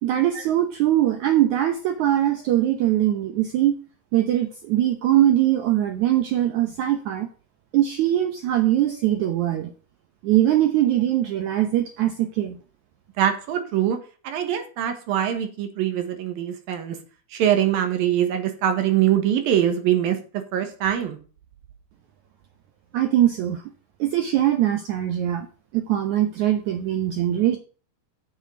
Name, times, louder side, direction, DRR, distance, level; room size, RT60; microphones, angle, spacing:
voice 1, 0.0-3.8 4.1-7.3 7.7-9.7 10.2-12.6 22.9-23.6 24.0-25.5 25.7-27.6, right 12 dB, 90° right, 1.6 m, -21 dB
voice 2, 13.2-14.0 14.2-17.0 17.3-20.2 20.5-21.2, right 10 dB, 70° right, 2.9 m, -23 dB
7.9 x 7.3 x 6.8 m
omnidirectional pair, 4.7 m